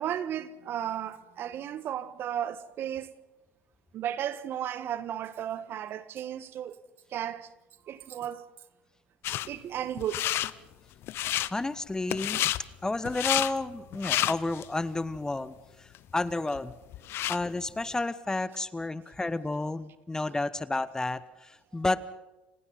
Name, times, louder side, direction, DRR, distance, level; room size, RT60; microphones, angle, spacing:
voice 1, 0.0-3.1 3.9-6.8 7.1-7.5 7.9-8.4 9.5-10.3, right 10 dB, 50° right, 1.4 m, -34 dB
sound 1, 9.2-9.5 10.0-10.5 11.0-11.5 12.1-12.6 13.0-13.5 13.9-14.7 15.2-15.3 15.9-16.0 16.3-17.4, left 14 dB, 55° left, 0.8 m, -29 dB
voice 2, 11.5-12.4 12.8-16.7 17.3-22.0, left 2 dB, 15° left, 1.0 m, -31 dB
29.5 x 26.0 x 4.1 m
hypercardioid pair, 70°, 5 cm